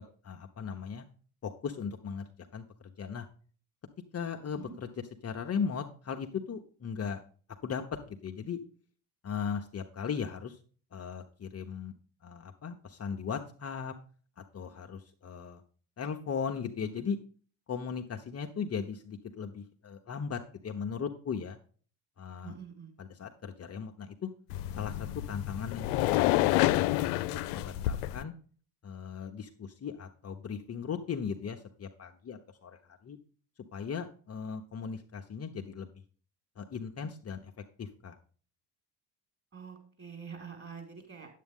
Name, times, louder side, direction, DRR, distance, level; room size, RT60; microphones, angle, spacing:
voice 1, 0.2-1.0 1.4-3.3 4.1-4.9 5.2-7.2 7.6-8.6 9.2-10.6 10.9-11.9 12.2-13.9 14.4-15.6 16.0-17.2 17.7-21.6 22.2-22.6 23.0-24.3 24.7-28.3 28.8-33.2 33.7-35.9 36.6-37.5 37.8-38.2, left 6 dB, 35° left, 4 dB, 0.9 m, -38 dB
voice 2, 22.4-22.9 39.5-41.3, right 6 dB, 30° right, 3 dB, 4.9 m, -46 dB
sound 1, 24.5-28.2, left 16 dB, 85° left, 0.6 m, -28 dB
9.3 x 8.2 x 3.6 m, 0.41 s
supercardioid pair, 80°, 44 cm